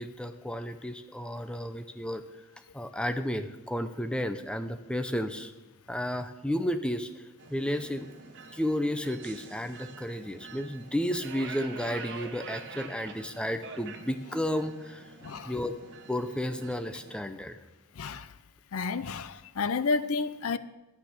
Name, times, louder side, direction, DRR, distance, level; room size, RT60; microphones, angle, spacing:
voice 1, 0.0-2.2 2.7-5.5 5.9-7.2 7.5-8.1 8.5-15.1 15.4-15.8 16.1-17.6, equal, 5° left, 0.6 m, -32 dB
sound 1, 7.4-17.2, right 5 dB, 55° right, 1.2 m, -46 dB
voice 2, 18.0-18.3 18.7-20.6, left 4 dB, 70° left, 0.6 m, -31 dB
12.0 x 9.2 x 6.7 m
head